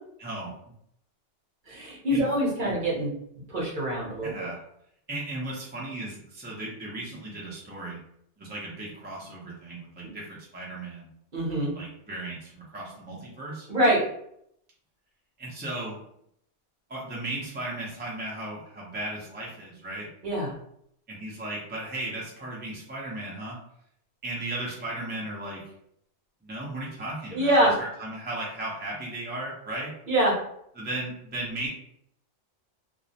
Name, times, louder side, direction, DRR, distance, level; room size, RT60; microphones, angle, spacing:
voice 1, 0.2-0.5 2.1-2.3 2.6-2.7 4.2-4.6 5.1-8.0 8.4-11.1 11.7-13.7 15.4-16.0 16.9-20.1 21.1-23.6 24.2-25.6 26.4-27.7 28.0-29.9 30.8-31.7, right 2 dB, 15° right, -5 dB, 0.3 m, -36 dB
voice 2, 1.7-3.2 3.5-4.5 11.3-11.7 13.7-14.0 20.2-20.5 27.3-27.7 30.1-30.4, right 1 dB, 45° right, -4 dB, 0.8 m, -24 dB
2.4 x 2.0 x 2.7 m, 0.72 s
omnidirectional pair, 1.3 m